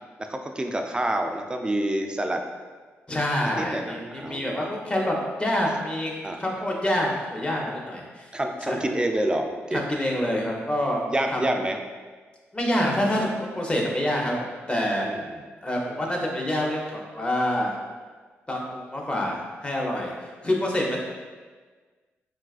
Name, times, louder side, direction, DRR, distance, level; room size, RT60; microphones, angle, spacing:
voice 1, 0.2-2.4 3.4-4.8 6.2-6.5 8.3-9.9 11.1-11.8 15.0-15.4, right 1 dB, 20° right, 4 dB, 0.3 m, -28 dB
voice 2, 3.1-6.1 6.4-8.3 8.7-8.8 9.7-11.0 11.3-11.4 12.5-15.1 15.6-17.8 18.5-21.0, left 1 dB, 20° left, -1 dB, 0.7 m, -27 dB
4.0 x 2.3 x 2.3 m, 1.4 s
cardioid pair, 65°, 5 cm